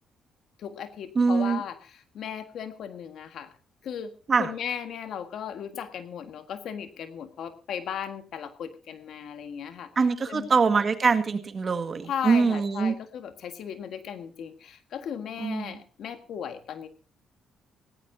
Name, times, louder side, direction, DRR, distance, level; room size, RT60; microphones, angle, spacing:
voice 1, 0.6-3.5 3.8-9.9 10.3-10.5 12.0-16.9, left 8 dB, 70° left, 8 dB, 1.7 m, -36 dB
voice 2, 1.2-1.6 4.3-4.5 10.0-12.9 15.4-15.8, right 5 dB, 40° right, 8 dB, 1.9 m, -23 dB
17.5 x 17.5 x 2.8 m, 0.36 s
cardioid pair, 90°, 0 cm